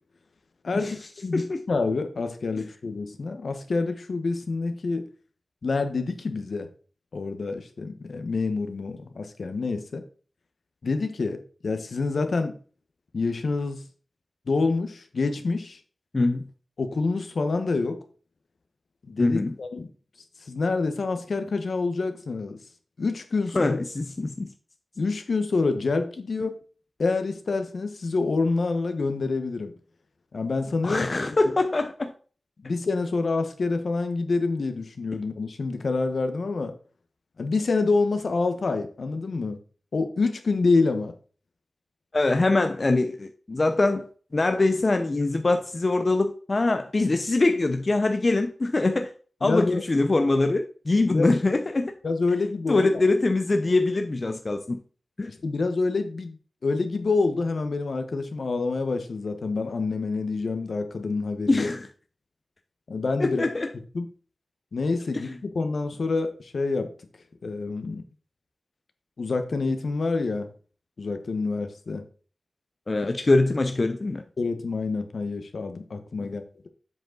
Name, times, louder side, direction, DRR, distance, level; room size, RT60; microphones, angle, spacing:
voice 1, 0.6-5.0 5.6-6.7 7.1-10.0 10.8-12.6 13.1-13.8 14.5-15.8 16.8-18.0 19.1-19.9 20.4-22.6 23.0-23.8 25.0-26.5 27.0-29.7 30.3-31.1 31.4-31.5 32.6-36.7 37.4-39.6 39.9-41.1 49.4-49.8 51.1-51.3 52.0-53.0 55.3-61.7 62.9-63.5 63.9-64.1 64.7-66.9 67.4-68.0 69.2-70.5 71.0-72.0 74.4-76.4, left 3 dB, 70° left, 1.0 m, -27 dB
voice 2, 16.1-16.5 19.2-19.5 23.5-24.5 26.4-26.5 30.8-32.1 42.1-49.1 49.4-51.9 52.7-54.8 55.2-55.3 61.5-61.9 63.2-63.7 65.2-65.4 72.9-74.2 76.2-76.3, left 2 dB, 40° left, 0.6 m, -23 dB
7.6 x 5.0 x 3.9 m
wide cardioid pair, 70°, 0 cm